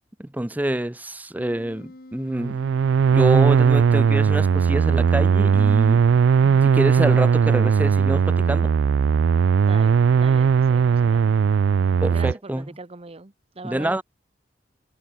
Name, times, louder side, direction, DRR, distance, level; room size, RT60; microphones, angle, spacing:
voice 1, 0.2-2.6 3.1-6.0 6.6-8.7 12.0-12.7 13.6-14.0, right 1 dB, 10° right, 0.6 m, -26 dB
Wind instrument woodwind instrument, 1.4-6.8, left 1 dB, 55° left, 1.8 m, -47 dB
sound 1, 2.3-12.3, right 6 dB, 85° right, 0.3 m, -18 dB
voice 2, 9.7-11.4 12.1-14.0, right 3 dB, 35° right, 1.1 m, -40 dB
head